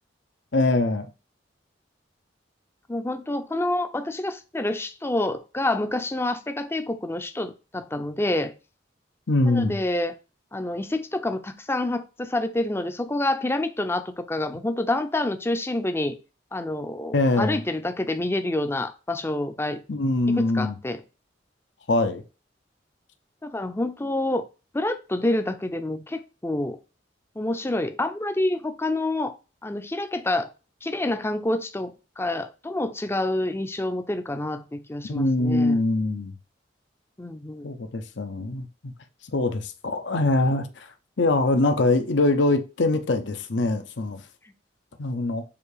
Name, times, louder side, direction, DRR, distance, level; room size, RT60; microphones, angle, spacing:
voice 1, 0.5-1.1 9.3-9.8 17.1-17.6 19.9-20.7 21.9-22.2 35.1-36.3 37.6-38.9 39.3-40.9 41.2-44.2 45.0-45.4, left 2 dB, 75° left, 0.8 m, -23 dB
voice 2, 2.9-8.5 9.4-10.1 10.5-16.1 16.5-19.8 20.4-21.0 23.4-24.4 24.7-26.8 27.4-29.3 29.6-30.5 30.8-35.8 37.2-37.7, left 1 dB, 15° left, 0.6 m, -27 dB
7.1 x 2.8 x 4.9 m
head